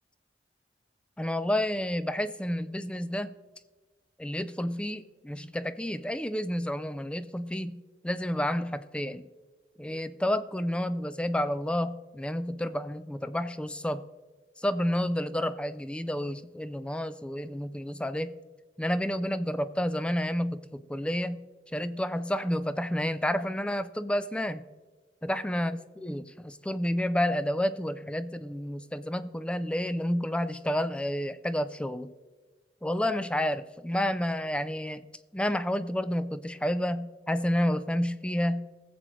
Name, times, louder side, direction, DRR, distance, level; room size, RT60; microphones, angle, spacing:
voice 1, 1.2-3.3 4.2-7.8 8.0-9.3 9.8-14.0 14.6-18.3 18.8-21.4 21.7-24.6 25.2-32.1 32.8-35.0 35.3-38.7, equal, 5° left, 13 dB, 0.4 m, -30 dB
19.0 x 7.7 x 3.1 m, 1.3 s
head